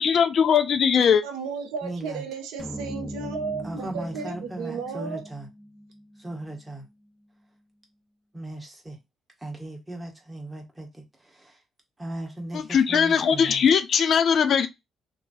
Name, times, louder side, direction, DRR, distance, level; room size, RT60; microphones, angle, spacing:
voice 1, 0.0-1.2 12.5-14.7, left 7 dB, 60° left, 0.4 m, -20 dB
voice 2, 1.2-5.2, right 5 dB, 80° right, 0.5 m, -34 dB
voice 3, 1.8-2.2 3.6-5.5 6.2-6.9 8.3-9.0 9.4-11.6 12.0-13.7, right 1 dB, 20° right, 1.4 m, -37 dB
sound 1, 2.6-6.9, equal, 5° left, 0.6 m, -40 dB
2.8 x 2.7 x 2.6 m
hypercardioid pair, 50°, 0 cm